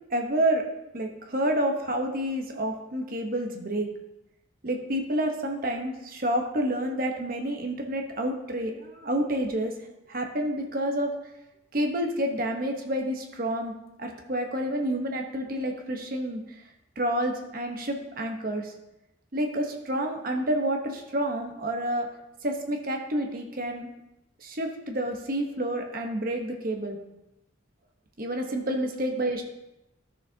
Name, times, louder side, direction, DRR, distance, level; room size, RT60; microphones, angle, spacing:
voice 1, 0.1-0.7 0.9-3.9 4.6-9.7 10.1-11.1 11.7-13.7 14.0-16.4 17.0-18.7 19.3-22.1 22.4-23.9 24.4-27.0 28.2-29.4, right 1 dB, 45° right, 3 dB, 1.1 m, -29 dB
12.5 x 6.7 x 2.8 m, 0.92 s
head